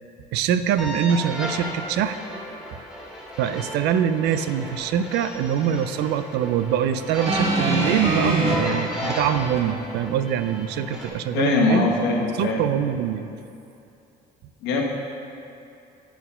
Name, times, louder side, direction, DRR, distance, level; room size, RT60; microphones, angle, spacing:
voice 1, 0.3-2.2 3.4-11.9 12.4-13.3, right 9 dB, 80° right, 11 dB, 0.4 m, -24 dB
sound 1, 0.8-11.1, equal, 5° right, 1.9 m, -34 dB
sound 2, 7.3-8.6 9.6-9.7, right 3 dB, 40° right, 1.1 m, -22 dB
voice 2, 11.3-12.6 14.6-14.8, left 3 dB, 85° left, 0 dB, 1.1 m, -21 dB
9.1 x 4.3 x 5.5 m, 2.7 s
cardioid pair, 110°, 17 cm